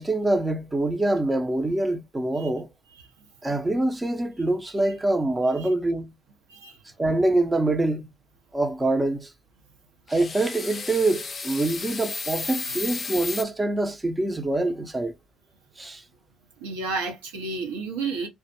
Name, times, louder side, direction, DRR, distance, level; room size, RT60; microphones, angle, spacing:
voice 1, 0.0-2.7 3.4-6.1 7.0-8.0 8.5-9.3 10.1-15.1 15.8-16.0, right 2 dB, 20° right, 0.5 m, -25 dB
voice 2, 2.9-3.3 5.6-5.7 6.5-6.8 11.6-11.8 16.6-18.3, right 4 dB, 80° right, 0.7 m, -32 dB
sound 1, 10.1-13.4, left 4 dB, 40° left, 0.4 m, -33 dB
2.1 x 2.0 x 3.0 m
hypercardioid pair, 50°, 0 cm